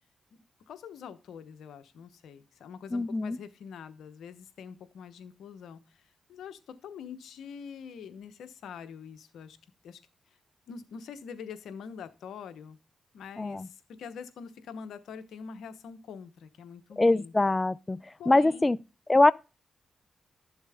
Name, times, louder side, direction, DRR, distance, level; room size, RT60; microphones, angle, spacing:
voice 1, 0.7-6.0 6.3-9.6 9.8-10.0 10.7-12.8 13.1-17.3 18.2-18.7, left 6 dB, 85° left, 1.0 m, -44 dB
voice 2, 2.9-3.4 13.4-13.7 17.0-18.8 19.1-19.3, left 2 dB, 25° left, 0.4 m, -23 dB
11.5 x 7.2 x 3.5 m
supercardioid pair, 50°, 0 cm